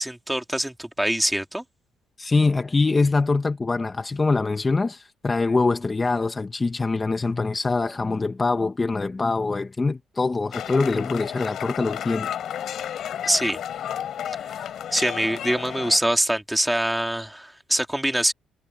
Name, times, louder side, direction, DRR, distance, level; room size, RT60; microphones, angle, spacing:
voice 1, 0.0-1.6 13.2-13.6 14.9-18.3, right 1 dB, 5° right, 3.0 m, -24 dB
voice 2, 2.2-12.3, left 3 dB, 25° left, 1.1 m, -24 dB
sound 1, 10.5-16.0, left 10 dB, 70° left, 3.6 m, -32 dB
cardioid pair, 90°, 0 cm